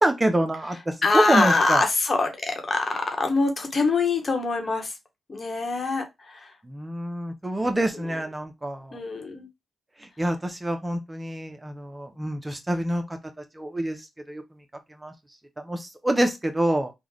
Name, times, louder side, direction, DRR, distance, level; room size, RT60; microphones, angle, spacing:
voice 1, 0.0-1.8 6.6-9.0 10.2-13.0 13.6-14.0 14.3-14.4 15.0-15.1 15.6-16.9, right 1 dB, 20° right, 0.8 m, -26 dB
voice 2, 1.0-4.9 5.3-6.5 8.9-9.5, left 3 dB, 45° left, 1.2 m, -24 dB
3.6 x 2.4 x 3.2 m
supercardioid pair, 45°, 0 cm